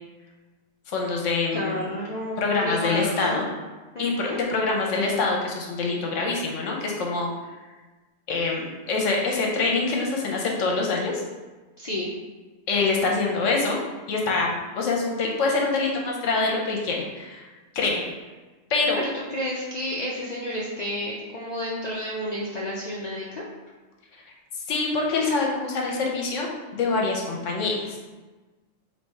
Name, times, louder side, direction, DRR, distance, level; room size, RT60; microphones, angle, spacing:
voice 1, 0.9-1.9 2.4-3.4 4.0-7.3 8.3-11.1 12.7-13.8 14.1-17.5 17.7-18.0 18.7-19.0 24.7-28.0, left 3 dB, 75° left, -1 dB, 1.1 m, -25 dB
voice 2, 1.5-3.4 3.9-4.4 11.8-12.1 19.0-23.4, equal, 60° left, -5 dB, 0.4 m, -31 dB
3.4 x 2.8 x 4.4 m, 1.2 s
omnidirectional pair, 1.3 m